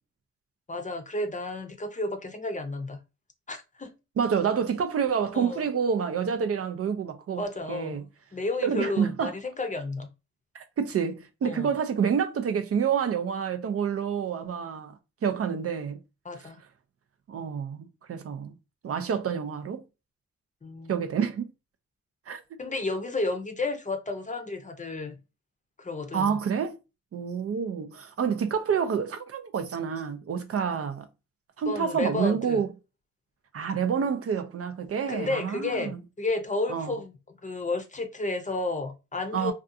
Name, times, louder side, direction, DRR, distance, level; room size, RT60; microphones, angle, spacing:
voice 1, 0.7-3.0 3.5-3.9 5.3-5.7 7.4-10.1 11.4-11.8 16.2-16.6 20.6-21.0 22.6-25.1 25.8-26.4 31.7-32.6 35.1-37.2 37.4-39.5, left 2 dB, 25° left, 0.6 m, -32 dB
voice 2, 4.2-7.4 7.7-8.0 8.6-9.3 10.5-14.9 15.2-16.0 17.3-18.5 18.8-19.8 20.9-21.5 22.3-22.4 26.1-26.8 27.1-31.1 31.6-32.7 33.5-36.0 36.7-36.9 39.3-39.5, right 7 dB, 50° right, 0.5 m, -28 dB
2.5 x 2.4 x 2.5 m
cardioid pair, 60°, 30 cm